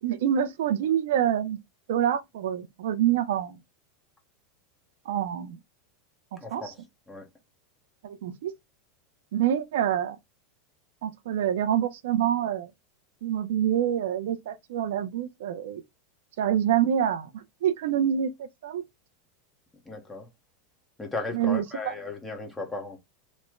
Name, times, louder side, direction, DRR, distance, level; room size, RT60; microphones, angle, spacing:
voice 1, 0.0-1.6 1.9-3.6 5.1-5.6 6.3-6.7 8.0-8.5 9.3-10.2 11.0-12.7 13.2-15.8 16.4-18.8 21.3-21.9, right 10 dB, 80° right, 0.4 m, -26 dB
voice 2, 6.4-6.8 7.1-7.3 19.8-20.3 21.0-23.0, left 3 dB, 10° left, 0.9 m, -36 dB
3.1 x 2.0 x 3.6 m
supercardioid pair, 135°, 0 cm